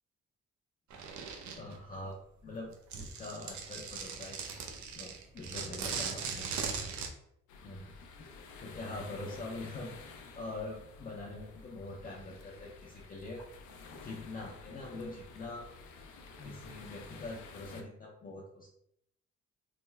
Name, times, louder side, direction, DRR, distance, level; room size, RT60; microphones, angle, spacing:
sound 1, 0.9-1.8 2.7-7.1, right 6 dB, 70° right, 0.6 m, -39 dB
voice 1, 1.6-2.7 3.0-6.5 7.6-7.9 8.2-8.3 8.6-13.4 14.0-15.7 16.4-18.7, left 2 dB, 30° left, -2 dB, 0.6 m, -44 dB
sound 2, 7.5-17.8, left 4 dB, 75° left, 0.6 m, -51 dB
3.4 x 2.1 x 3.3 m, 0.75 s
cardioid pair, 90°, 30 cm